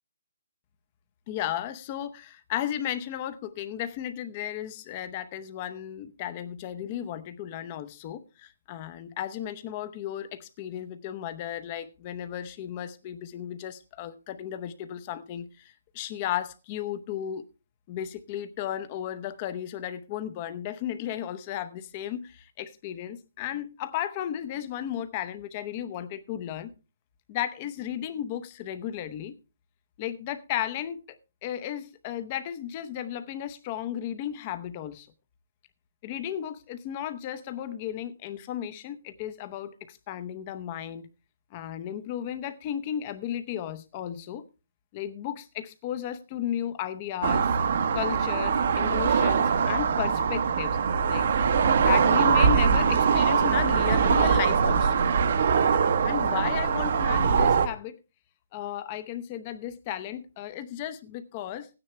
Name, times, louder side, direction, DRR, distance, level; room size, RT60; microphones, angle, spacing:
voice 1, 1.3-17.4 17.9-26.7 27.3-29.4 30.0-31.0 31.4-35.1 36.0-41.1 41.5-44.4 44.9-47.5 47.9-50.8 51.1-51.3 51.8-55.1 56.0-58.0 58.5-61.7, left 11 dB, 25° left, 0.7 m, -34 dB
sound 1, 47.2-57.7, right 6 dB, 45° right, 1.0 m, -22 dB
15.5 x 9.7 x 3.3 m
hypercardioid pair, 170°, 0 cm